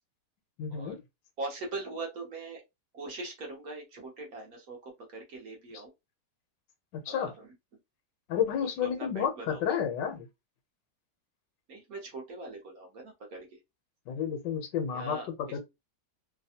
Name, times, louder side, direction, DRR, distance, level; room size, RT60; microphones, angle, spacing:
voice 1, 0.6-1.0 7.1-7.3 8.3-10.3 14.1-15.2 15.5-15.6, left 8 dB, 75° left, 1.3 m, -31 dB
voice 2, 1.4-2.6 2.9-5.9 7.1-7.5 8.8-9.8 11.7-13.6 14.9-15.6, right 2 dB, 60° right, 1.2 m, -41 dB
3.3 x 2.2 x 2.7 m
omnidirectional pair, 1.9 m